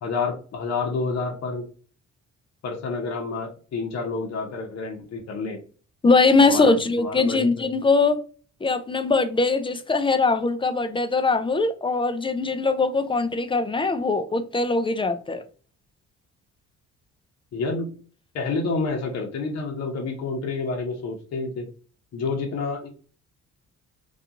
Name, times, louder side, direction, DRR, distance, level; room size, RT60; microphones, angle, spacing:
voice 1, 0.0-1.6 2.6-5.6 6.4-7.7 17.5-17.9 18.3-21.7 22.1-22.9, left 4 dB, 60° left, 0.8 m, -29 dB
voice 2, 6.0-8.2 8.6-15.4, left 3 dB, 20° left, 0.3 m, -21 dB
2.4 x 2.3 x 2.8 m
cardioid pair, 90°, 30 cm